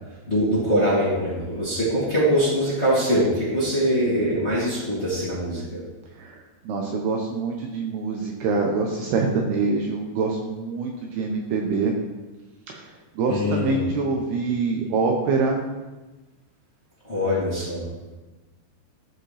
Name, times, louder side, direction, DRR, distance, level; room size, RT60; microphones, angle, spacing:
voice 1, 0.3-5.8 13.3-13.8 17.0-17.8, equal, 20° left, -9 dB, 1.9 m, -23 dB
voice 2, 6.7-11.9 12.7-12.9 13.2-15.6, right 4 dB, 75° right, 1 dB, 2.4 m, -25 dB
13.5 x 5.0 x 3.3 m, 1.1 s
omnidirectional pair, 5.1 m